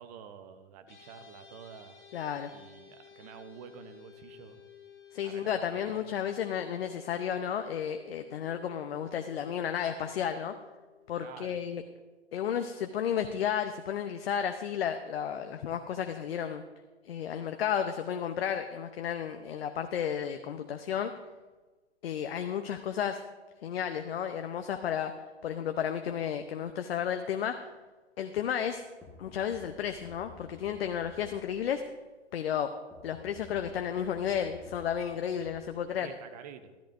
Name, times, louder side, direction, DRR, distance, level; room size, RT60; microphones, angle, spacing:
voice 1, 0.0-2.0 2.5-4.7 5.2-6.0 11.2-11.6 35.9-36.7, right 7 dB, 35° right, 9 dB, 0.8 m, -49 dB
sound 1, 0.9-12.3, left 8 dB, 80° left, 2.2 m, -55 dB
voice 2, 2.1-2.5 5.1-10.5 11.1-11.8 12.3-16.6 17.0-21.1 22.0-23.2 23.6-25.1 25.4-27.6 28.2-28.8 29.2-31.8 32.3-32.7 33.0-36.1, left 8 dB, 60° left, 7 dB, 0.8 m, -32 dB
sound 2, 29.0-32.0 32.9-36.2, left 3 dB, 5° left, 1.5 m, -53 dB
13.5 x 13.5 x 2.6 m, 1.3 s
hypercardioid pair, 125°, 35 cm